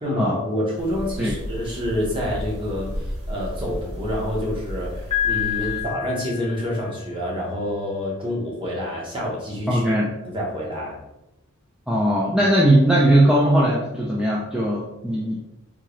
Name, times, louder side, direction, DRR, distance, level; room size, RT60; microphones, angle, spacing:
voice 1, 0.0-9.9 10.2-11.0, left 1 dB, 25° right, -4 dB, 0.9 m, -27 dB
sound 1, 0.8-5.8, equal, 80° right, 0.8 m, -33 dB
Piano, 5.1-7.0, left 11 dB, 25° left, 0.8 m, -27 dB
voice 2, 9.7-10.1 11.9-15.4, right 1 dB, 5° right, -5 dB, 0.4 m, -19 dB
3.6 x 2.9 x 3.0 m, 0.93 s
head